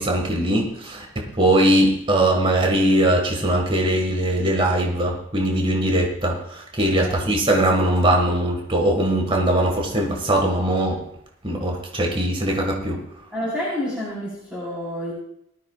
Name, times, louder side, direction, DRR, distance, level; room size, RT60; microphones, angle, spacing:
voice 1, 0.0-11.0 11.4-13.0, right 1 dB, 25° right, 0 dB, 1.8 m, -21 dB
voice 2, 13.3-15.1, left 1 dB, 5° right, -8 dB, 4.1 m, -29 dB
19.0 x 13.0 x 2.4 m, 0.74 s
head